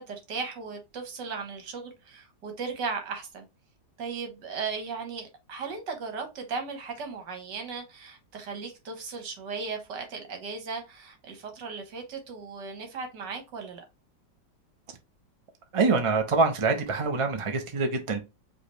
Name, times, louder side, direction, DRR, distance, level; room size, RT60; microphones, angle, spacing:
voice 1, 0.0-3.5 4.0-13.8, right 5 dB, 70° right, 1.9 m, -36 dB
voice 2, 15.7-18.2, right 4 dB, 35° right, 0.5 m, -25 dB
5.1 x 3.2 x 3.2 m
omnidirectional pair, 2.0 m